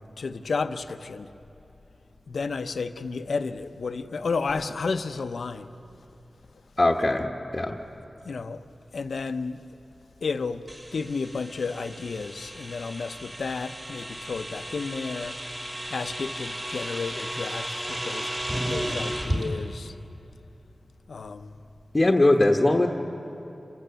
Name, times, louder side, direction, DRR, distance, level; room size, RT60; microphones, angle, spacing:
voice 1, 0.0-1.3 2.3-5.7 8.2-8.7 8.9-9.6 10.2-15.4 15.9-20.0 21.1-21.6, left 4 dB, 90° left, 10 dB, 0.7 m, -32 dB
voice 2, 6.8-7.8 21.9-22.9, left 2 dB, 25° left, 1 dB, 1.1 m, -21 dB
sound 1, 10.7-19.4, right 1 dB, 25° right, 3.0 m, -34 dB
28.0 x 15.5 x 6.9 m, 2.9 s
wide cardioid pair, 85°, 0 cm